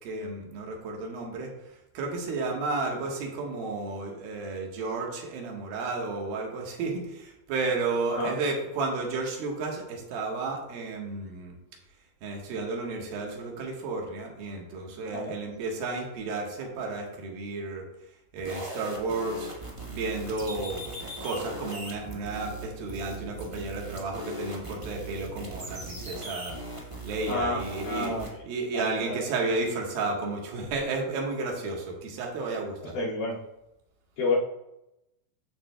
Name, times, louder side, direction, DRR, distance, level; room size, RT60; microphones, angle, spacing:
voice 1, 0.0-1.5 1.9-11.5 12.2-17.9 18.3-19.5 19.9-20.8 21.2-26.6 27.0-28.1 28.4-33.0, right 3 dB, 80° right, 0 dB, 3.2 m, -32 dB
sound 1, 18.4-28.3, right 1 dB, 50° right, 0.3 m, -39 dB
voice 2, 27.3-28.3 28.7-29.2 32.9-33.4 34.2-34.4, left 3 dB, 70° left, -6 dB, 4.0 m, -30 dB
14.0 x 7.4 x 2.3 m, 0.90 s
omnidirectional pair, 4.2 m